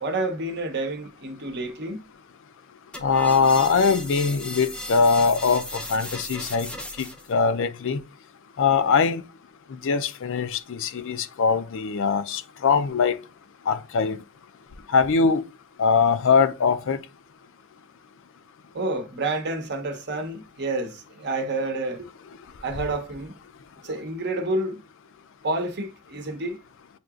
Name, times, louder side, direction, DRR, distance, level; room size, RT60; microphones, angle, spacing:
voice 1, 0.0-2.0 18.7-22.1 22.6-23.3 23.8-24.8 25.4-26.6, right 2 dB, 50° right, 0.9 m, -29 dB
sound 1, 2.9-7.3, left 1 dB, 5° left, 0.6 m, -36 dB
voice 2, 3.0-6.7 7.0-8.0 8.6-9.2 9.7-13.2 13.7-14.2 14.9-15.4 15.8-17.0, left 5 dB, 60° left, 0.4 m, -22 dB
7.6 x 2.9 x 2.4 m
head